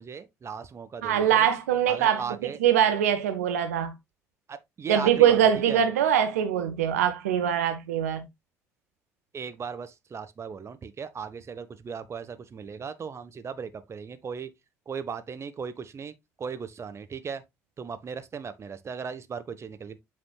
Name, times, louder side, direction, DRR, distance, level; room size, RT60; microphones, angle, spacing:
voice 1, 0.0-1.5 1.9-2.6 4.5-5.8 9.3-14.5 14.9-17.4 17.8-20.0, right 6 dB, 35° right, 1.1 m, -37 dB
voice 2, 1.0-3.9 4.9-8.3, right 9 dB, 80° right, 0.7 m, -23 dB
8.3 x 5.0 x 2.3 m
figure-of-eight pair, 50°, 8 cm